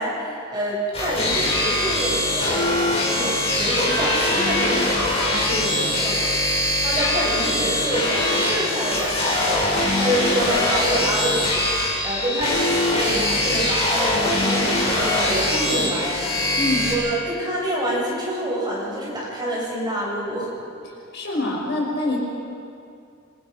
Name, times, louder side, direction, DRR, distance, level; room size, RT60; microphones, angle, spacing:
voice 1, 0.0-4.9 6.0-6.3 6.8-16.6 16.9-20.5, right 1 dB, 20° right, -5 dB, 7.2 m, -27 dB
sound 1, 0.9-16.9, left 1 dB, 30° left, 6.2 m, -22 dB
voice 2, 5.3-6.0 16.5-16.9 21.1-22.2, left 2 dB, 55° left, -2 dB, 5.4 m, -26 dB
26.5 x 25.0 x 5.5 m, 2.4 s
head